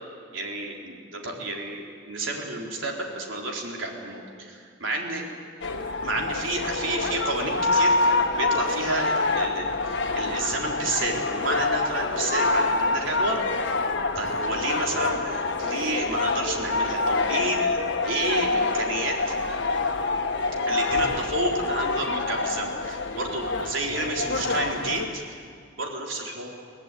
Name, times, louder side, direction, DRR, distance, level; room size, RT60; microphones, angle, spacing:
voice 1, 0.3-5.2 6.0-13.4 14.2-19.3 20.7-25.2 25.8-26.5, right 2 dB, 75° right, 0 dB, 4.0 m, -30 dB
sound 1, 5.6-25.1, left 3 dB, 65° left, 1.7 m, -26 dB
24.0 x 17.5 x 9.3 m, 2.3 s
head